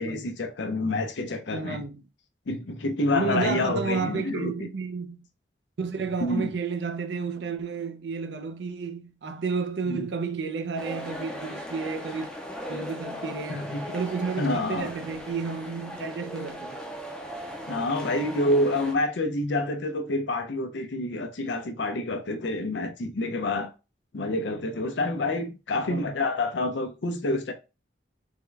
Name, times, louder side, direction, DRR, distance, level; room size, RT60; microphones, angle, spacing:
voice 1, 0.0-1.9 2.5-4.7 6.2-6.5 9.9-10.1 13.5-13.8 14.4-14.9 17.6-23.7 24.1-27.5, left 2 dB, 80° left, 0.6 m, -28 dB
voice 2, 1.5-2.0 3.1-5.3 5.8-12.3 12.7-16.8 25.9-26.2, right 5 dB, 70° right, 0.5 m, -32 dB
sound 1, 10.8-18.9, equal, 5° left, 0.5 m, -38 dB
3.6 x 2.2 x 3.2 m
head